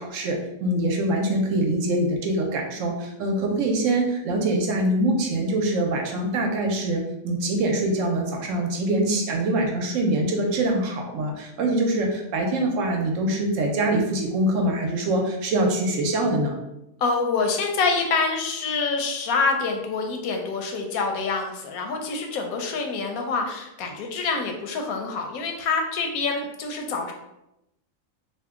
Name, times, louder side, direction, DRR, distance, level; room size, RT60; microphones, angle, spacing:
voice 1, 0.0-16.6, right 1 dB, 70° right, 1 dB, 0.9 m, -24 dB
voice 2, 17.0-27.1, left 4 dB, 90° left, 3 dB, 1.0 m, -26 dB
2.8 x 2.1 x 3.5 m, 0.88 s
omnidirectional pair, 1.4 m